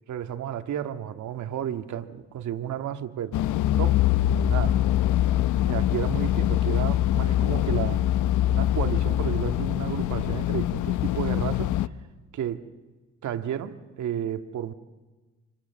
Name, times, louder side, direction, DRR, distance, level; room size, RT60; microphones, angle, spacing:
voice 1, 0.1-3.4 3.8-4.0 4.5-4.8 5.6-8.0 8.5-11.7 12.3-12.6 13.2-14.7, right 10 dB, 70° right, 8 dB, 1.9 m, -32 dB
sound 1, 3.3-11.9, left 12 dB, 80° left, 0.8 m, -24 dB
29.0 x 26.5 x 7.0 m, 1.2 s
cardioid pair, 90°, 30 cm